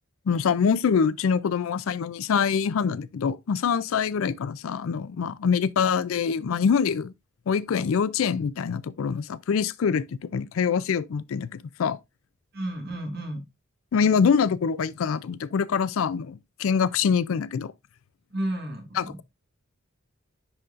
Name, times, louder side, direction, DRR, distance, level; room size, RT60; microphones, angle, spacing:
voice 1, 0.3-7.1 7.5-12.0 13.9-17.7 19.0-19.2, left 6 dB, 70° left, 0.4 m, -25 dB
voice 2, 12.5-13.4 18.3-19.2, right 1 dB, 50° right, 1.5 m, -32 dB
9.8 x 3.9 x 2.4 m
head